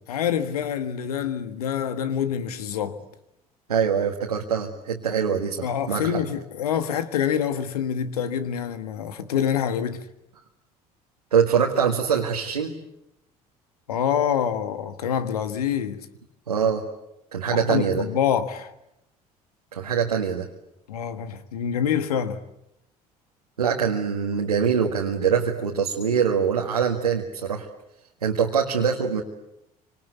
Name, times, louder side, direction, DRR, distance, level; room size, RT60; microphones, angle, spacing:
voice 1, 0.1-3.0 5.6-10.0 13.9-16.1 17.5-18.7 20.9-22.4, left 8 dB, 75° left, 1.6 m, -26 dB
voice 2, 3.7-6.2 11.3-12.7 16.5-16.8 17.3-18.0 19.7-20.5 23.6-27.7 28.2-29.2, right 7 dB, 85° right, 1.8 m, -23 dB
28.0 x 26.0 x 8.2 m
figure-of-eight pair, 60°, 19 cm